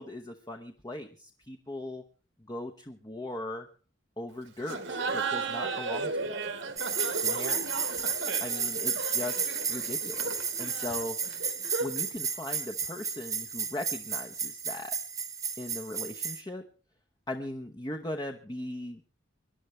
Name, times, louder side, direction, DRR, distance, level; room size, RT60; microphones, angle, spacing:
voice 1, 0.0-2.0 2.5-3.7 4.2-6.4 7.2-7.7 8.4-11.2 11.8-15.0 15.6-16.6 17.3-19.0, left 1 dB, 20° left, 3 dB, 0.9 m, -39 dB
Laughter, 4.6-12.1, right 4 dB, 70° right, 1.7 m, -35 dB
sound 1, 6.8-16.4, right 6 dB, 15° right, 1.1 m, -33 dB
25.5 x 11.5 x 3.2 m, 0.37 s
head